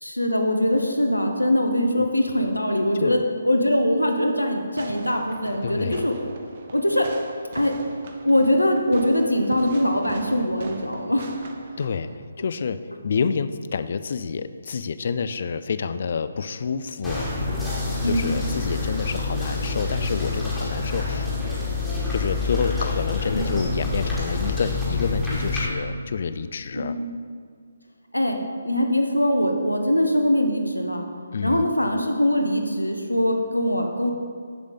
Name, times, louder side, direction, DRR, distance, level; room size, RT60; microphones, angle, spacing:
voice 1, 0.0-6.1 6.7-7.1 7.5-7.7 8.2-11.3 18.0-18.3 23.3-23.6 26.7-27.0 28.1-28.4 28.6-31.0 31.4-34.1, left 1 dB, 85° left, 4 dB, 0.8 m, -22 dB
Fireworks, 4.8-12.2, right 3 dB, 40° right, 0.6 m, -40 dB
voice 2, 5.6-6.0 11.8-17.3 18.0-21.6 22.1-27.0 31.3-31.7, left 5 dB, 50° left, 13 dB, 0.3 m, -28 dB
sound 1, 17.0-25.7, left 3 dB, ahead, 1.4 m, -27 dB
6.8 x 6.4 x 3.7 m, 2.1 s
figure-of-eight pair, 140°, 0 cm